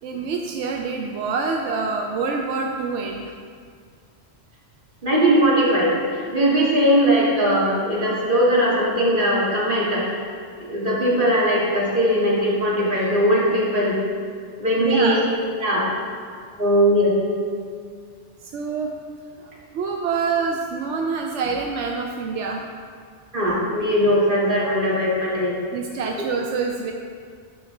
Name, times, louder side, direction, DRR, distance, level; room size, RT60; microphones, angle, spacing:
voice 1, 0.0-3.3 14.8-15.2 18.5-18.9 19.7-22.6 25.7-26.9, right 4 dB, 85° right, 2 dB, 0.9 m, -26 dB
voice 2, 5.0-10.1 10.7-13.9 14.6-15.2 15.5-15.9 16.6-17.1 23.3-25.6, equal, 45° right, -7 dB, 2.1 m, -19 dB
10.0 x 5.7 x 3.7 m, 2.1 s
omnidirectional pair, 1.2 m